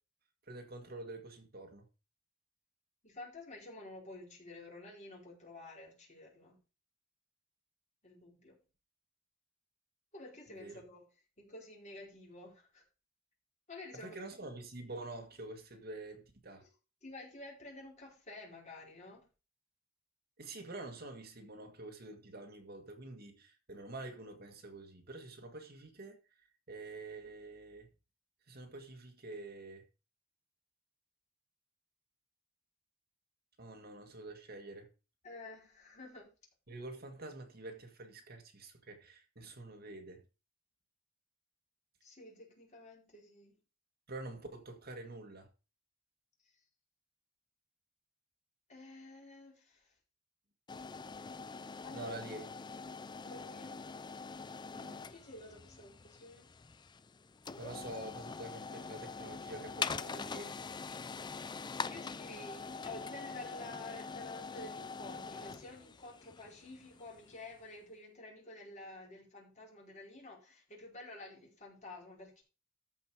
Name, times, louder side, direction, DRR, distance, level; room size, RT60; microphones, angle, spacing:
voice 1, 0.5-1.8 10.5-10.8 13.9-16.6 20.4-26.2 26.7-27.9 28.5-29.8 33.6-34.9 36.7-40.2 44.1-45.5 51.9-52.5 54.7-55.0 57.6-60.6, right 2 dB, 50° right, 1.9 m, -47 dB
voice 2, 3.0-6.6 8.0-8.6 10.1-11.1 11.4-12.8 13.7-14.5 16.6-16.7 17.0-19.2 35.2-36.3 42.0-43.6 48.7-49.9 51.8-52.1 53.2-53.9 55.1-56.5 61.9-72.4, left 2 dB, 40° left, 4.6 m, -50 dB
sound 1, 50.7-67.5, left 5 dB, 20° left, 0.4 m, -44 dB
13.5 x 5.4 x 4.8 m
head